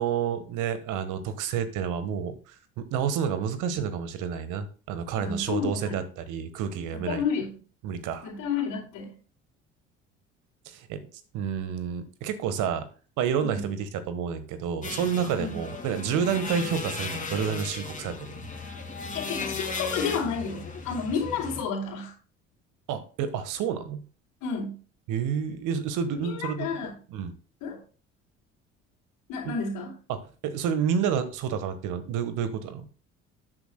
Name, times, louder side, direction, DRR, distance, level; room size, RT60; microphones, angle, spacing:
voice 1, 0.0-7.2 7.8-8.3 10.6-11.1 11.3-12.9 13.2-18.5 22.9-24.0 25.1-26.7 27.1-27.3 29.4-29.5 30.1-32.9, right 7 dB, 60° right, 11 dB, 1.4 m, -29 dB
voice 2, 5.2-6.0 6.9-7.6 8.2-9.1 13.4-13.6 15.4-15.6 19.1-22.1 24.4-24.8 26.2-26.9 27.6-27.8 29.3-29.9, left 5 dB, 60° left, -6 dB, 3.0 m, -31 dB
sound 1, 14.8-21.6, left 4 dB, 20° left, 2.4 m, -36 dB
12.5 x 9.0 x 2.2 m, 0.38 s
figure-of-eight pair, 55°, 35 cm